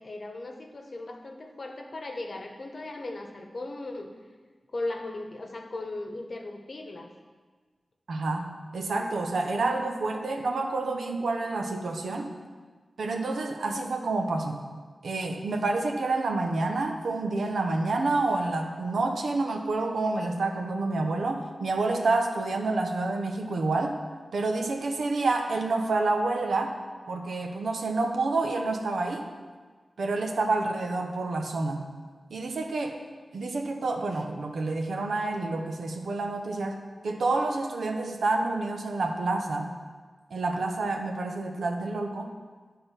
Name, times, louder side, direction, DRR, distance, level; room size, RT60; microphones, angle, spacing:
voice 1, 0.0-4.1 4.7-7.1, left 2 dB, 50° left, 3 dB, 0.9 m, -37 dB
voice 2, 8.1-8.5 8.7-12.3 13.0-14.6 15.0-24.0 24.3-26.8 27.1-29.3 30.0-31.8 32.3-33.0 33.3-36.8 37.0-39.7 40.3-42.3, right 3 dB, 90° right, 3 dB, 0.8 m, -28 dB
10.0 x 3.8 x 5.6 m, 1.5 s
wide cardioid pair, 80°, 0 cm